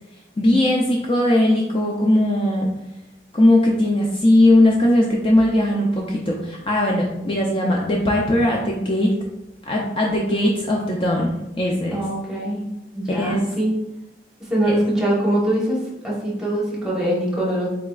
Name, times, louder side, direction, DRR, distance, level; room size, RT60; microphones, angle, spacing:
voice 1, 0.4-2.7 3.3-9.1 9.7-12.0 13.1-13.4 14.7-14.8, left 1 dB, 30° left, -2 dB, 0.4 m, -19 dB
voice 2, 11.9-12.6 12.9-13.7 14.5-17.7, right 1 dB, 5° right, -5 dB, 0.9 m, -23 dB
4.0 x 3.3 x 2.3 m, 0.92 s
head